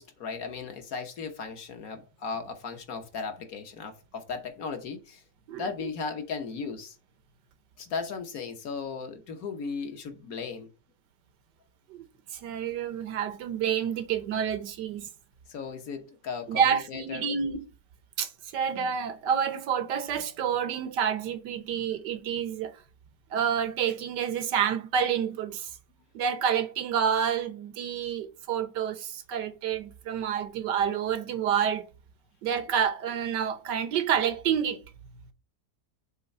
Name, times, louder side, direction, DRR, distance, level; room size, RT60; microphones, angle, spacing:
voice 1, 0.0-5.2 5.5-7.0 7.8-10.7 15.5-17.3, left 5 dB, 60° left, 1.5 m, -36 dB
voice 2, 11.9-15.1 16.5-17.6 18.2-22.8 23.3-25.7 26.1-31.9 32.4-34.8, right 8 dB, 85° right, 1.6 m, -28 dB
6.8 x 3.2 x 5.4 m
omnidirectional pair, 1.8 m